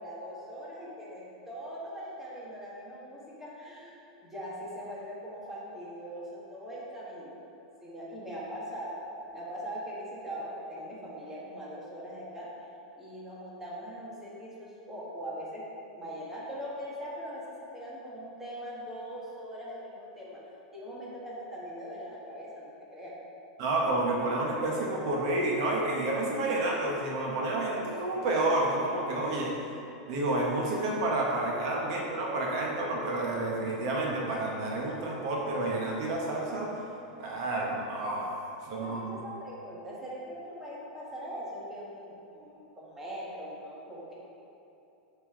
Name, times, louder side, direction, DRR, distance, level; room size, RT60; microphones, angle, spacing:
voice 1, 0.0-7.3 7.8-9.0 9.3-12.5 13.0-15.6 15.9-20.4 20.7-23.1 38.8-44.1, equal, 10° right, -7 dB, 1.6 m, -41 dB
voice 2, 23.6-29.6 30.1-36.7 37.2-38.3 38.6-39.2, right 2 dB, 50° right, -2 dB, 1.2 m, -30 dB
11.5 x 5.5 x 3.8 m, 2.9 s
supercardioid pair, 165°, 4 cm